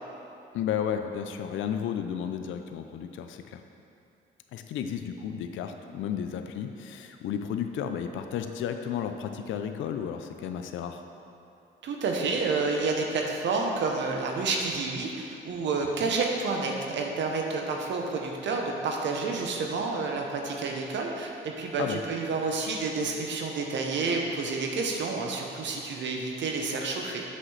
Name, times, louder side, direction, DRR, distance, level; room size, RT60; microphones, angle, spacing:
voice 1, 0.5-3.6 4.5-11.0 16.0-16.1 21.8-22.0, left 8 dB, 80° left, 7 dB, 0.5 m, -33 dB
voice 2, 11.8-27.2, right 4 dB, 65° right, 1 dB, 0.9 m, -29 dB
7.5 x 5.9 x 3.3 m, 2.7 s
cardioid pair, 90°, 20 cm